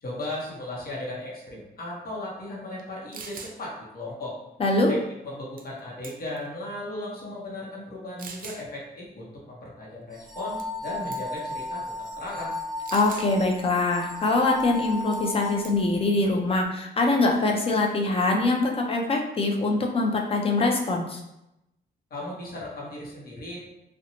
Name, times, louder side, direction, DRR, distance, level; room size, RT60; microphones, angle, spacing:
voice 1, 0.0-4.3 4.9-11.9 12.2-12.5 22.1-23.6, left 1 dB, 60° left, -4 dB, 0.8 m, -36 dB
sound 1, 2.8-2.9 3.1-3.6 5.6-5.8 6.0-6.5 7.2-7.3 8.2-8.6 10.6-10.8 11.1-11.4 12.9-13.3 15.1-15.3 15.6-16.0, right 5 dB, 55° right, 0.4 m, -41 dB
voice 2, 4.6-4.9 12.9-21.2, left 2 dB, 35° left, 1 dB, 0.5 m, -23 dB
sound 2, 10.1-16.0, left 2 dB, ahead, 0.7 m, -35 dB
2.6 x 2.1 x 2.8 m, 0.88 s
cardioid pair, 85°, 17 cm